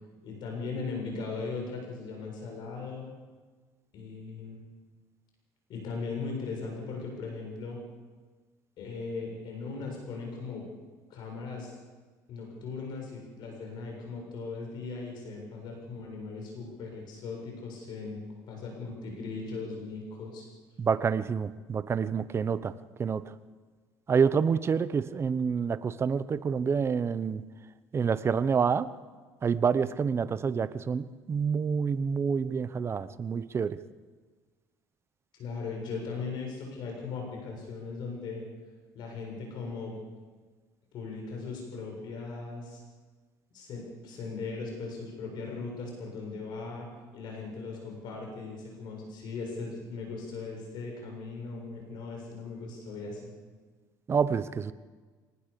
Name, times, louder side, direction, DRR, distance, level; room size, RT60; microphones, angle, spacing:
voice 1, 0.2-3.1 3.9-4.6 5.7-7.8 8.8-10.7 11.1-11.7 12.3-18.2 18.5-20.4 35.3-38.4 38.9-40.0 40.9-42.8 43.5-46.9 47.1-53.3, left 4 dB, 60° left, 1 dB, 7.5 m, -38 dB
voice 2, 20.8-22.7 23.0-23.3 24.1-27.4 27.9-28.9 29.4-33.8 54.1-54.7, right 6 dB, 30° right, 15 dB, 0.9 m, -28 dB
24.5 x 19.0 x 7.0 m, 1.4 s
supercardioid pair, 110°, 9 cm